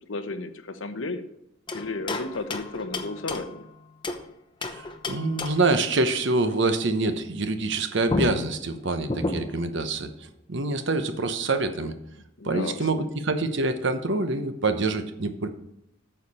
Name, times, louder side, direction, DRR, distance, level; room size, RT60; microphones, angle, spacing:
voice 1, 0.1-1.2 1.7-3.6 12.4-13.0, left 3 dB, 70° left, 9 dB, 0.9 m, -33 dB
sound 1, 1.7-4.3 4.6-5.8 7.7-7.8 8.1-9.7, left 2 dB, 25° left, 0.8 m, -32 dB
voice 2, 4.7-10.1 10.5-11.9 12.4-15.5, right 3 dB, 60° right, 8 dB, 1.0 m, -26 dB
9.2 x 6.6 x 4.3 m, 0.81 s
head